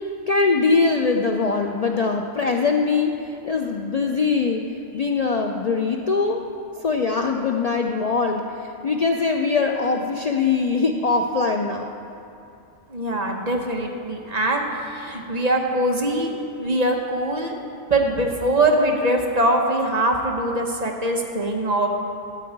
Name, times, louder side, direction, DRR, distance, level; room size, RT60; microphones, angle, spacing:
voice 1, 0.3-3.1 3.4-4.6 4.9-6.4 6.8-8.4 8.8-11.9, left 4 dB, 80° left, 2 dB, 0.3 m, -22 dB
voice 2, 12.9-16.3 16.6-17.5 17.9-21.9, right 1 dB, 35° right, 1 dB, 1.0 m, -22 dB
13.0 x 4.6 x 8.6 m, 2.7 s
omnidirectional pair, 1.4 m